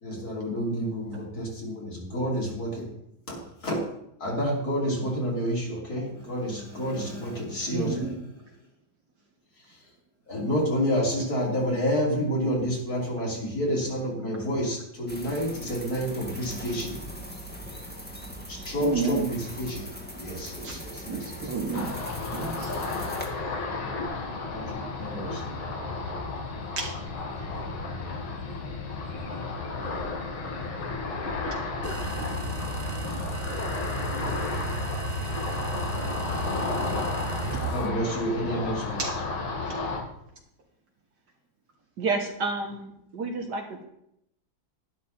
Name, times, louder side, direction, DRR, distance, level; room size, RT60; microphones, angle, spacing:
voice 1, 0.0-2.9 3.3-3.4 3.6-3.7 4.2-8.1 10.3-17.0 18.5-19.8 20.2-21.2 24.5-25.4 37.7-39.0, equal, 45° left, -3 dB, 3.8 m, -29 dB
voice 2, 5.0-5.4 7.7-8.2 16.3-16.4 18.8-19.3 20.6-22.0 22.3-22.8 26.8-26.9 39.0-39.2 39.7-39.8, right 4 dB, 80° right, -1 dB, 3.4 m, -31 dB
sound 1, 15.1-23.3, equal, 5° left, 1.7 m, -40 dB
Ocean, 21.7-40.0, left 3 dB, 75° left, 2.8 m, -32 dB
sound 2, 31.8-37.9, right 3 dB, 35° right, 0.6 m, -34 dB
voice 3, 42.0-43.8, right 3 dB, 60° right, 3 dB, 1.8 m, -30 dB
11.5 x 11.5 x 4.3 m, 0.78 s
omnidirectional pair, 2.2 m